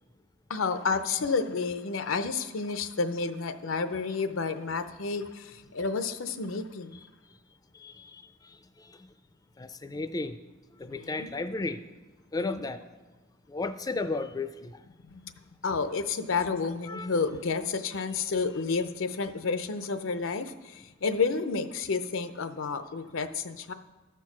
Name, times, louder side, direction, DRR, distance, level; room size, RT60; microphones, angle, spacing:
voice 1, 0.5-7.0 10.8-11.3 12.4-12.6 15.1-15.3 15.6-23.7, left 4 dB, 90° left, 10 dB, 0.6 m, -30 dB
voice 2, 7.7-9.0 9.6-10.4 10.8-11.8 12.3-12.8 13.5-14.8 16.9-17.1, left 3 dB, 20° left, 10 dB, 0.4 m, -34 dB
13.5 x 4.6 x 6.0 m, 1.2 s
head